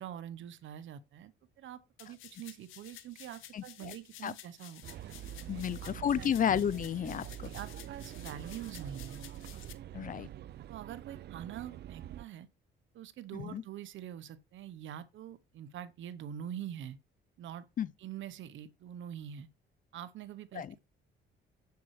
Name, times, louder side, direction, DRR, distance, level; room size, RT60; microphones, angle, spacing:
voice 1, 0.0-1.3 1.6-4.8 5.5-6.3 7.2-9.3 10.7-12.5 12.9-17.0 17.4-17.7 18.0-19.5 19.9-20.8, right 10 dB, 75° right, 0.9 m, -45 dB
sound 1, 2.0-9.7, left 12 dB, 85° left, 0.9 m, -53 dB
voice 2, 3.5-3.9 4.2-4.3 5.5-7.3 9.9-10.3 13.3-13.6 17.8-17.9 20.5-20.7, left 9 dB, 45° left, 0.4 m, -32 dB
sound 2, 4.8-12.2, right 12 dB, 55° right, 0.4 m, -45 dB
7.6 x 7.0 x 3.2 m
cardioid pair, 90°, 20 cm